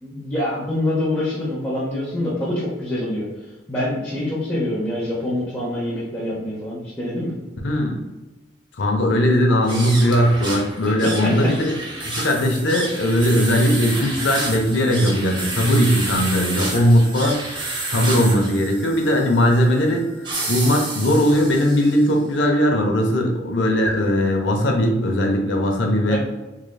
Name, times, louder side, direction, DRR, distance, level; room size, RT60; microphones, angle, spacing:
voice 1, 0.0-3.2 3.7-7.3 11.0-11.3 26.1-26.2, left 1 dB, 10° left, -10 dB, 0.8 m, -25 dB
voice 2, 7.6-8.0 8.8-11.7 12.0-17.6 17.9-20.1 20.5-26.2, equal, 80° left, 2 dB, 0.7 m, -19 dB
sound 1, 9.6-22.1, right 2 dB, 25° right, 0.6 m, -30 dB
3.7 x 3.3 x 2.2 m, 1.1 s
head